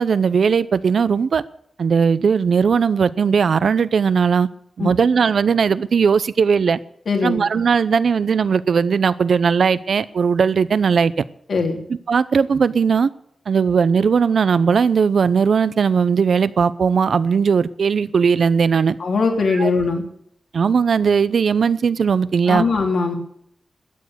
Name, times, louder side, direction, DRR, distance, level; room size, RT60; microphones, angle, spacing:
voice 1, 0.0-1.4 1.8-4.5 4.8-6.8 7.2-11.1 12.1-13.1 13.5-19.0 19.5-19.7 20.5-22.7, right 6 dB, 70° right, 0.7 m, -18 dB
voice 2, 7.1-7.4 11.5-11.8 19.0-20.0 22.5-23.2, left 4 dB, 65° left, 3.1 m, -20 dB
13.5 x 9.4 x 8.0 m
wide cardioid pair, 115°, 0 cm